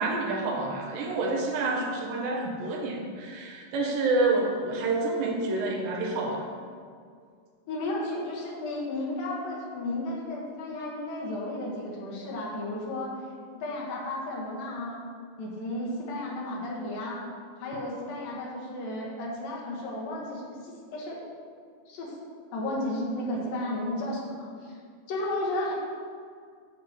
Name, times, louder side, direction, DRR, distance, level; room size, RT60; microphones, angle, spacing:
voice 1, 0.0-6.6, right 2 dB, 85° right, 0 dB, 2.7 m, -28 dB
voice 2, 7.7-13.2 13.5-15.0 15.4-17.2 17.6-21.2 21.9-22.1 22.5-24.8 25.1-25.7, left 1 dB, 85° left, -4 dB, 3.1 m, -33 dB
9.5 x 7.3 x 3.0 m, 2.1 s
omnidirectional pair, 4.0 m